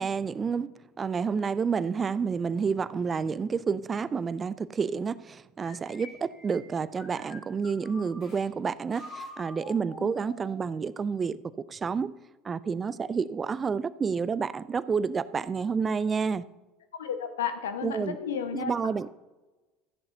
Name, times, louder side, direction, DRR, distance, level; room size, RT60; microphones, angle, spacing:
voice 1, 0.0-12.1 12.4-16.4 17.8-18.2 18.5-19.1, right 5 dB, 25° right, 0.4 m, -29 dB
sound 1, 5.6-8.4 8.9-10.7, left 1 dB, 50° left, 2.8 m, -47 dB
voice 2, 17.0-18.7, left 7 dB, 75° left, 1.1 m, -32 dB
14.5 x 10.5 x 2.7 m
figure-of-eight pair, 65°, 0 cm